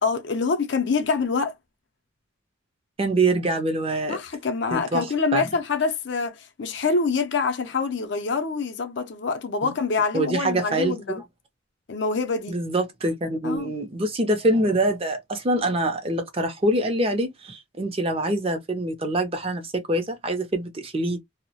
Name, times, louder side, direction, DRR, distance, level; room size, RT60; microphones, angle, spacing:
voice 1, 0.0-1.5 4.1-11.2 11.9-12.6 13.4-13.7, left 4 dB, 60° left, 0.5 m, -25 dB
voice 2, 3.0-4.2 4.7-5.1 5.3-5.4 9.6-9.7 10.1-10.9 12.5-21.2, right 1 dB, 30° right, 0.5 m, -25 dB
2.3 x 2.0 x 2.6 m
head